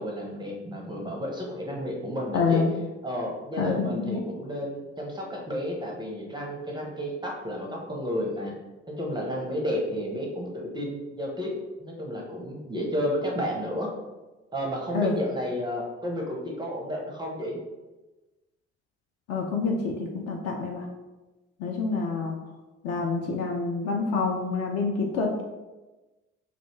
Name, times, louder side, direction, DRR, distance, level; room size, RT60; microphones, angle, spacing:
voice 1, 0.0-2.6 3.0-8.5 8.9-11.5 11.8-13.9 14.5-17.6 21.9-22.0, equal, 10° right, -1 dB, 0.5 m, -32 dB
voice 2, 2.3-2.7 3.6-4.2 14.9-15.1 19.3-20.9 21.6-22.4 22.8-25.4, left 4 dB, 45° left, 1 dB, 0.4 m, -27 dB
2.4 x 2.0 x 2.9 m, 1.1 s
figure-of-eight pair, 45°, 37 cm